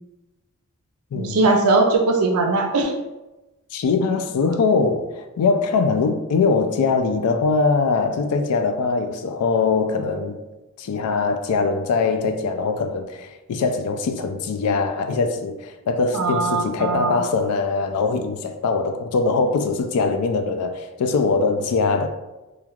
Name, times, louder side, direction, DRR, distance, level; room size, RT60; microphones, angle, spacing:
voice 1, 1.1-2.9 16.1-17.2, right 3 dB, 80° right, 0.5 m, -20 dB
voice 2, 3.7-10.4 10.8-22.1, left 4 dB, 80° left, 0.3 m, -22 dB
3.1 x 2.3 x 2.3 m
head